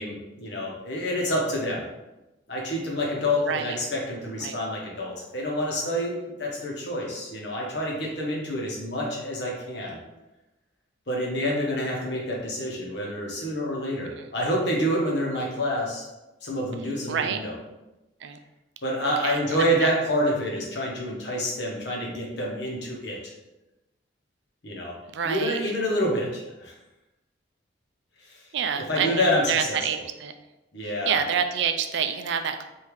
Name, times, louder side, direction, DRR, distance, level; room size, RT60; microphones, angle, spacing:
voice 1, 0.0-1.8 2.5-10.0 11.1-16.1 16.4-17.5 18.8-23.3 24.6-25.0 25.2-26.7 28.7-29.8 30.7-31.2, equal, 60° left, -3 dB, 1.1 m, -28 dB
voice 2, 3.4-3.8 4.4-4.6 14.2-14.3 17.1-17.4 18.2-18.4 19.2-19.9 25.1-25.6 28.5-30.3 31.1-32.6, right 7 dB, 65° right, 7 dB, 0.4 m, -27 dB
3.4 x 2.7 x 4.6 m, 0.99 s
head